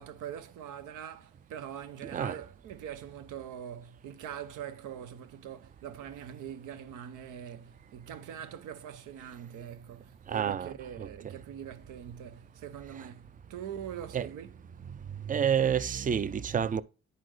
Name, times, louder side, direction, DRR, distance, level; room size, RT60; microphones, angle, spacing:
voice 1, 0.0-14.5, right 9 dB, 90° right, 0.8 m, -43 dB
voice 2, 2.0-2.4 10.3-11.3 13.0-13.1 14.1-14.3 15.3-16.8, right 8 dB, 30° right, 0.4 m, -29 dB
10.5 x 4.2 x 3.1 m
cardioid pair, 90°, 30 cm